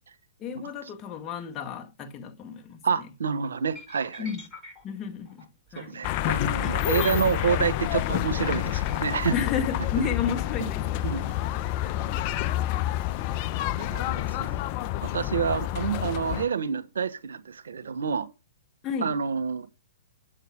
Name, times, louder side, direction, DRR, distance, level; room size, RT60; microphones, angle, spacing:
voice 1, 0.4-3.1 4.2-4.4 4.8-6.0 9.3-12.6 12.9-13.0 18.8-19.1, left 6 dB, 25° left, 1.6 m, -33 dB
voice 2, 2.8-4.3 5.8-9.3 11.0-11.3 13.8-14.6 15.0-18.3 19.0-19.7, right 6 dB, 75° right, 1.2 m, -28 dB
sound 1, 3.7-8.3 8.8-9.0, left 2 dB, 10° left, 6.1 m, -46 dB
sound 2, 6.0-16.5, left 14 dB, 40° left, 0.8 m, -28 dB
8.2 x 7.7 x 4.7 m
hypercardioid pair, 125°, 0 cm